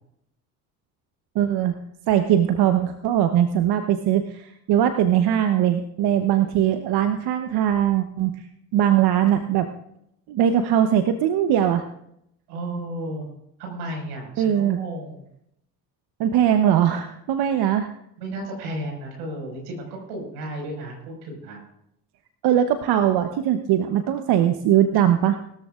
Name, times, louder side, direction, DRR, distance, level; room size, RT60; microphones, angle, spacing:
voice 1, 1.3-1.8 2.1-8.4 8.7-9.7 10.3-11.8 14.4-14.8 16.2-17.9 22.4-25.4, right 10 dB, 60° right, 8 dB, 1.0 m, -20 dB
voice 2, 12.5-13.3 13.6-15.2 18.2-21.6, right 1 dB, 80° right, 1 dB, 5.5 m, -33 dB
20.5 x 13.5 x 2.5 m, 0.77 s
hypercardioid pair, 60°, 45 cm